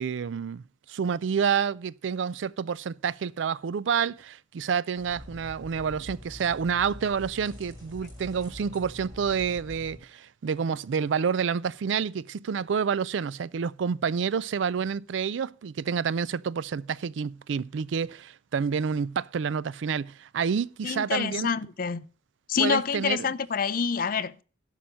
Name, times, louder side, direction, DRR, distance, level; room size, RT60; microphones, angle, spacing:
voice 1, 0.0-21.5 22.6-23.3, right 6 dB, 80° right, 0.4 m, -29 dB
sound 1, 5.0-10.0, left 1 dB, 20° right, 5.0 m, -45 dB
voice 2, 20.8-22.1 22.5-24.4, left 6 dB, 45° left, 0.5 m, -27 dB
11.5 x 5.9 x 6.3 m
head